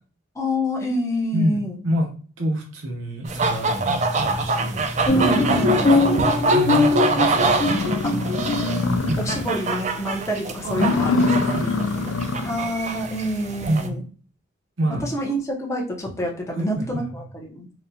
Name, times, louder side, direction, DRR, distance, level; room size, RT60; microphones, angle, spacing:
voice 1, 0.3-1.8 5.1-5.8 8.0-8.2 9.0-11.2 12.4-14.0 14.9-17.7, equal, 15° left, 0 dB, 0.7 m, -27 dB
voice 2, 1.3-2.1 2.4-4.8 6.0-8.0 8.3-8.5 9.1-9.4 10.6-10.8 11.1-12.2 13.7-14.1 14.8-15.1 16.6-17.2, right 1 dB, 75° right, 1 dB, 0.8 m, -28 dB
sound 1, 3.2-13.9, right 3 dB, 35° right, 0.4 m, -25 dB
sound 2, 4.5-4.6 5.0-6.4 6.8-6.9 7.3-7.4 7.6-9.5 9.8-10.2 10.6-12.7, left 3 dB, 85° left, 0.4 m, -25 dB
sound 3, 5.1-8.7, left 2 dB, 45° left, 1.0 m, -21 dB
4.1 x 2.1 x 2.7 m, 0.41 s
head